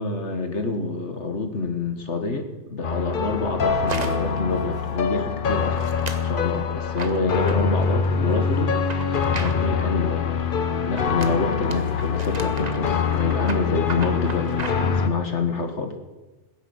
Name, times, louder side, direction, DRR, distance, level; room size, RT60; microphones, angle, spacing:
voice 1, 0.0-5.8 6.2-8.7 9.3-10.3 10.8-16.0, left 3 dB, 75° left, 6 dB, 2.1 m, -27 dB
sound 1, 2.8-15.1, left 6 dB, 50° left, 1.1 m, -24 dB
sound 2, 3.9-4.4 4.8-5.2 5.8-6.3 7.0-8.1 8.8-10.0 11.0-14.9, right 3 dB, 35° right, 1.2 m, -36 dB
16.5 x 10.5 x 8.1 m, 1.1 s
omnidirectional pair, 1.2 m